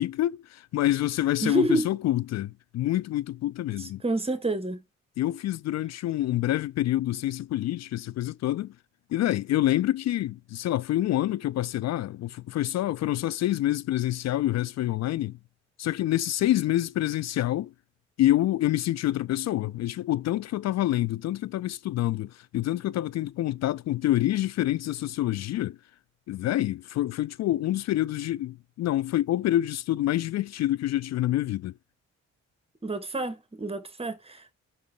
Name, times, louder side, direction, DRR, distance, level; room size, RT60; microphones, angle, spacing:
voice 1, 0.0-4.0 5.2-8.7 9.1-15.4 15.8-17.7 18.2-25.8 26.3-31.7, left 14 dB, 60° left, 0.4 m, -27 dB
voice 2, 1.4-1.9 3.8-4.8 32.8-34.5, right 1 dB, 20° right, 1.6 m, -28 dB
6.2 x 5.3 x 6.9 m
cardioid pair, 90°, 30 cm